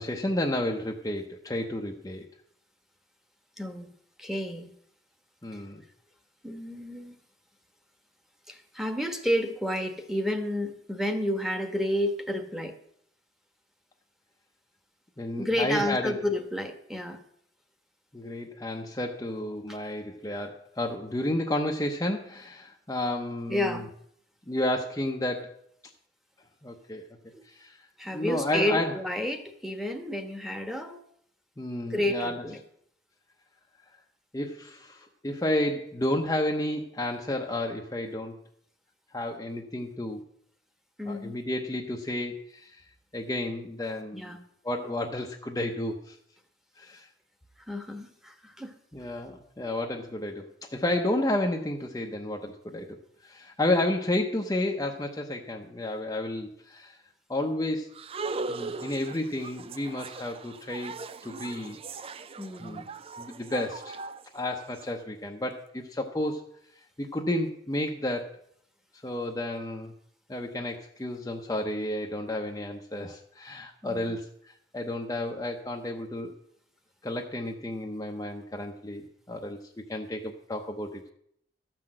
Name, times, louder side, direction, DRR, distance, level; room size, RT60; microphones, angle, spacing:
voice 1, 0.0-2.2 5.4-5.8 15.2-16.2 18.1-23.8 24.5-25.6 26.6-27.0 27.4-29.0 31.6-32.4 34.3-38.4 39.1-40.2 41.0-42.8 43.1-44.4 44.6-46.2 46.8-47.1 48.9-53.0 53.2-57.0 57.3-58.0 58.5-60.9 61.2-61.8 62.6-62.9 63.2-64.0 64.3-66.4 67.0-68.3 69.0-69.9 70.3-76.3 77.0-79.6 79.9-81.1, left 1 dB, 20° left, 1 dB, 0.8 m, -31 dB
voice 2, 3.6-3.9 4.2-4.7 5.5-5.6 6.4-7.1 8.5-12.8 15.4-17.2 23.5-23.9 27.3-27.4 28.0-31.0 31.9-32.6 41.0-41.3 44.1-44.4 47.7-48.7 58.9-59.0 62.4-62.8 73.8-74.1, left 1 dB, ahead, 6 dB, 1.2 m, -30 dB
sound 1, 57.9-64.8, right 3 dB, 30° right, 0.4 m, -39 dB
13.5 x 6.0 x 7.6 m, 0.69 s
head